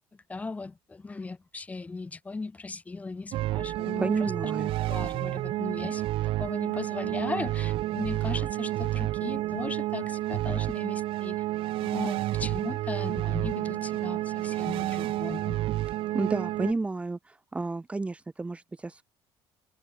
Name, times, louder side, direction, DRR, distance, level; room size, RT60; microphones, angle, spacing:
voice 1, 0.1-4.5 4.9-11.4 11.8-15.6, left 3 dB, 15° left, 5.4 m, -37 dB
sound 1, 3.3-16.7, right 16 dB, 60° right, 3.2 m, -30 dB
voice 2, 4.0-4.7 16.1-19.0, right 3 dB, 10° right, 3.4 m, -31 dB
cardioid pair, 155°, 10 cm